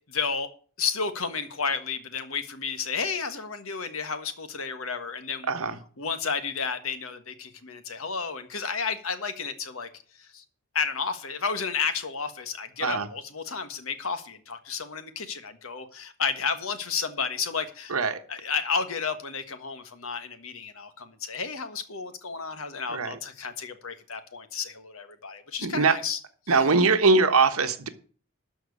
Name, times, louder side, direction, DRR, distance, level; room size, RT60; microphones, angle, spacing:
voice 1, 0.1-0.5 0.8-5.5 6.0-9.9 10.3-10.4 10.7-17.9 18.3-26.2 26.5-26.6, left 5 dB, 75° left, 1.4 m, -32 dB
voice 2, 17.9-18.2 22.9-23.2 25.6-26.0 26.5-27.9, right 4 dB, 85° right, 1.3 m, -22 dB
13.0 x 4.6 x 8.3 m
head